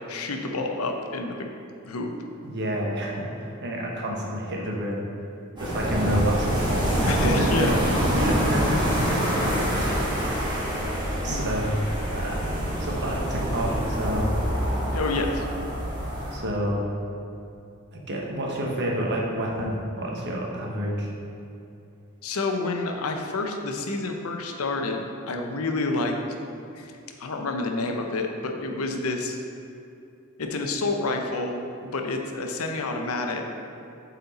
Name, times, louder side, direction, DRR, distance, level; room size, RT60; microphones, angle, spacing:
voice 1, 0.1-1.5 1.8-2.1 7.1-7.8 11.3-11.5 14.9-15.5 22.2-26.2 26.7-26.9 27.2-29.4 30.4-33.4, left 3 dB, 80° left, 3 dB, 0.7 m, -28 dB
voice 2, 2.4-5.0 5.6-7.7 8.1-8.8 9.3-9.9 11.2-12.5 12.8-14.3 16.3-16.8 17.9-21.1, equal, 55° right, -2 dB, 1.1 m, -29 dB
sound 1, 5.6-16.4, equal, 20° right, 1.5 m, -26 dB
7.7 x 4.2 x 4.1 m, 2.7 s
head